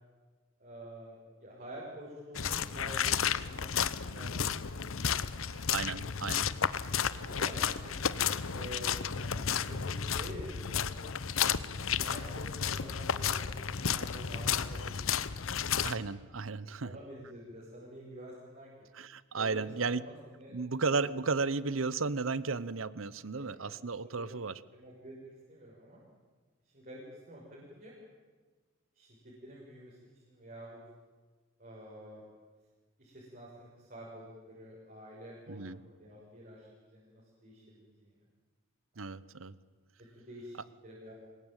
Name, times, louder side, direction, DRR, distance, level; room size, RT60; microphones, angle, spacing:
voice 1, 0.6-5.2 5.5-6.2 7.1-7.7 8.1-8.3 8.5-11.0 11.9-15.9 16.8-18.9 19.3-20.6 20.9-21.1 23.3-23.7 24.0-24.4 24.7-26.0 26.6-27.9 28.9-29.2 29.4-30.0 30.3-30.8 31.6-32.2 33.0-38.3 38.9-39.0 40.2-40.6 40.8-41.1, equal, 45° right, -5 dB, 6.3 m, -49 dB
sound 1, 2.3-16.0, left 7 dB, 85° left, 0.9 m, -32 dB
voice 2, 5.5-6.5 15.8-16.9 18.9-20.0 20.5-24.6 35.5-35.8 39.0-39.5, right 4 dB, 80° right, 18 dB, 0.9 m, -34 dB
25.5 x 21.0 x 9.1 m, 1.4 s
head